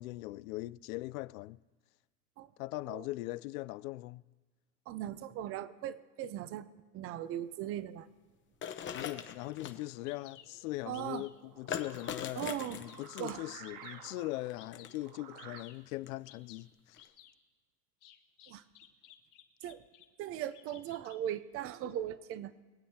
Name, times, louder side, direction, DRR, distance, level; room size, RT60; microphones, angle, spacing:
voice 1, 0.0-1.6 2.6-4.3 8.9-17.1, left 18 dB, 60° left, 0.5 m, -40 dB
voice 2, 4.9-8.1 10.9-11.3 12.4-12.8 13.2-13.4 18.5-18.6 19.6-19.8 20.2-22.5, right 11 dB, 30° right, 0.6 m, -39 dB
sound 1, 8.6-9.8 11.7-13.5 14.5-15.1 16.1-16.2 16.9-17.1, left 8 dB, 25° left, 0.9 m, -40 dB
sound 2, 8.7-15.6, right 8 dB, 65° right, 1.0 m, -54 dB
Bird vocalization bird call bird song, 9.6-9.7 10.1-10.5 10.9-11.4 11.8-12.2 12.7-13.1 13.6-14.1 14.6-14.9 15.4-15.8 16.2-16.6 17.0-17.3 18.0-20.1 20.4-21.2, left 11 dB, 40° left, 1.4 m, -56 dB
24.0 x 8.5 x 2.8 m
supercardioid pair, 120°, 48 cm